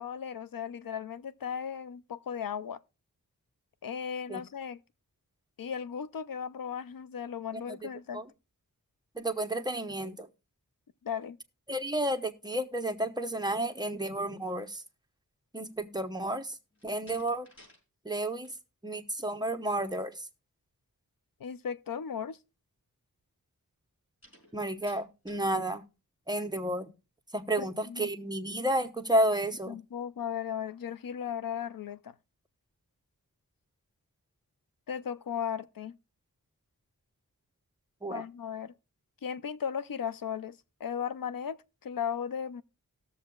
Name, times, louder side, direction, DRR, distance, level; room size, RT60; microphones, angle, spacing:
voice 1, 0.0-2.8 3.8-4.8 5.6-8.2 11.0-11.4 21.4-22.4 27.6-28.1 29.7-32.1 34.9-36.0 38.1-38.7 39.2-42.6, left 8 dB, 70° left, 0.5 m, -36 dB
voice 2, 9.1-10.3 11.7-14.8 15.5-16.5 16.8-17.5 18.0-18.5 18.8-20.2 24.5-25.8 26.3-26.9 27.3-29.8 38.0-38.2, right 1 dB, 10° right, 0.9 m, -31 dB
Slam, 16.7-17.8 18.1-18.6 24.2-25.6, left 1 dB, 40° left, 4.7 m, -57 dB
18.5 x 6.8 x 2.3 m
wide cardioid pair, 60°, 36 cm